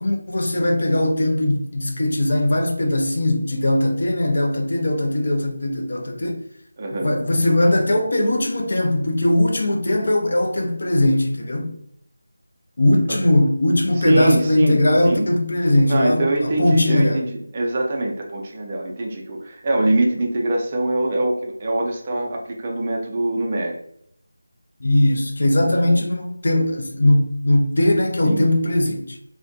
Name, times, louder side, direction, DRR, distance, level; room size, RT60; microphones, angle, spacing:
voice 1, 0.0-6.4 7.0-11.7 12.8-17.2 24.8-29.2, left 1 dB, 50° left, 0.5 m, -20 dB
voice 2, 6.8-7.1 14.0-15.3 15.9-23.8 25.6-26.0 28.2-28.5, right 2 dB, 25° right, 0.4 m, -23 dB
2.4 x 2.1 x 2.6 m
figure-of-eight pair, 165°, 0 cm